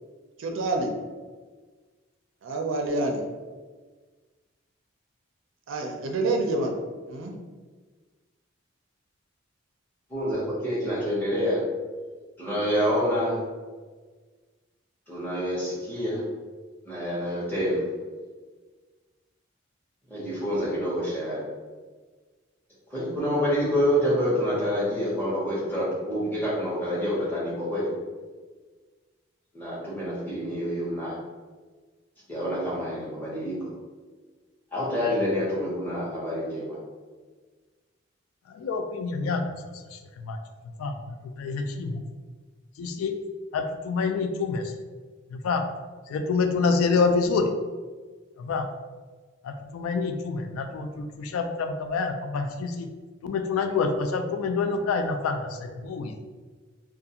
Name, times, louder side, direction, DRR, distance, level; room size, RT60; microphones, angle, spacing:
voice 1, 0.4-0.9 2.4-3.2 5.7-6.8 7.1-7.3, right 2 dB, 70° right, 2 dB, 0.4 m, -27 dB
voice 2, 10.1-11.6 12.4-13.4 15.1-16.2 16.8-17.8 20.1-21.4 22.9-27.9 29.5-31.2 32.3-33.6 34.7-36.8, equal, 10° left, -8 dB, 0.8 m, -27 dB
voice 3, 38.5-39.4 39.9-40.4 40.8-42.0 42.8-43.1 43.5-44.6 45.3-45.6 46.1-47.5 48.4-48.7 49.4-52.9 53.2-56.1, left 4 dB, 85° left, 8 dB, 0.3 m, -27 dB
2.3 x 2.3 x 2.8 m, 1.4 s
head